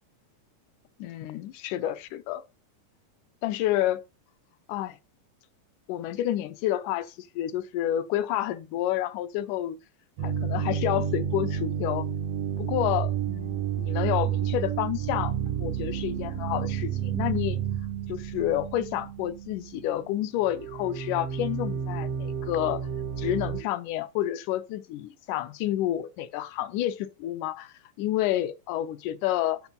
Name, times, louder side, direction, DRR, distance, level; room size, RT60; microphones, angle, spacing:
voice 1, 1.0-2.4 3.4-4.0 4.7-5.0 5.9-9.8 10.2-12.1 12.6-15.3 15.6-17.6 18.1-22.8 23.2-29.6, left 13 dB, 80° left, 2.0 m, -29 dB
sound 1, 10.2-20.1 20.4-23.6, right 9 dB, 75° right, 1.4 m, -31 dB
7.1 x 5.9 x 5.2 m
omnidirectional pair, 3.8 m